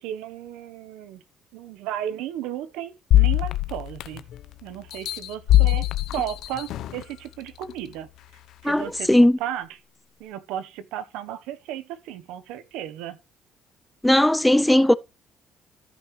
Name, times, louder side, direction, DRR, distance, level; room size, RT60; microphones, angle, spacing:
voice 1, 0.0-1.2 1.5-4.2 4.6-5.8 6.1-8.1 8.6-9.7 10.2-13.2, right 11 dB, 90° right, 1.0 m, -34 dB
sound 1, 3.1-4.4 4.9-7.0 7.6-7.7, left 14 dB, 75° left, 0.7 m, -21 dB
voice 2, 8.6-9.4 14.0-14.9, left 1 dB, 5° left, 0.5 m, -18 dB
14.0 x 5.8 x 3.2 m
cardioid pair, 85°, 0 cm